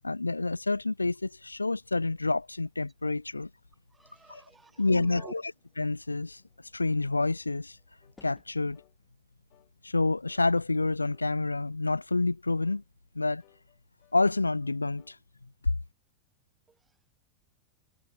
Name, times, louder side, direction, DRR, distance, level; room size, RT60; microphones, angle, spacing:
voice 1, 0.0-3.5 4.3-4.4 4.8-6.4 6.7-7.8 8.2-8.8 9.8-12.8 13.2-13.4 14.1-15.2 15.6-15.8, left 3 dB, 80° left, 0.3 m, -28 dB
voice 2, 3.9-5.3 16.7-17.1, right 4 dB, 15° right, 0.8 m, -49 dB
sound 1, 4.0-9.1, left 5 dB, 15° left, 3.5 m, -66 dB
sound 2, 8.0-8.2 8.7-9.0 9.5-9.7 10.3-10.5 11.1-11.3 11.8-12.1 12.6-12.9 13.4-15.2, left 32 dB, 45° left, 6.6 m, -65 dB
figure-of-eight pair, 90°, 0 cm